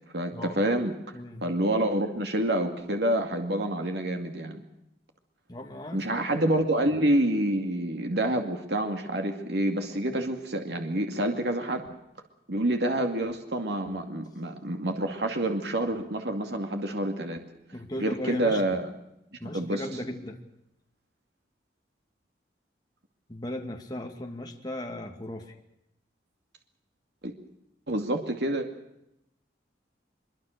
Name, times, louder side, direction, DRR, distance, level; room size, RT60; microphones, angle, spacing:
voice 1, 0.1-0.9 1.4-4.6 5.9-11.9 12.5-17.4 18.0-18.9 19.5-19.8 27.2-27.3 27.9-28.7, right 1 dB, 65° right, 4 dB, 2.4 m, -27 dB
voice 2, 5.5-6.5 17.7-18.6 19.4-20.4 23.3-25.6, left 1 dB, 20° left, 2 dB, 2.4 m, -37 dB
23.5 x 23.0 x 6.6 m, 0.84 s
head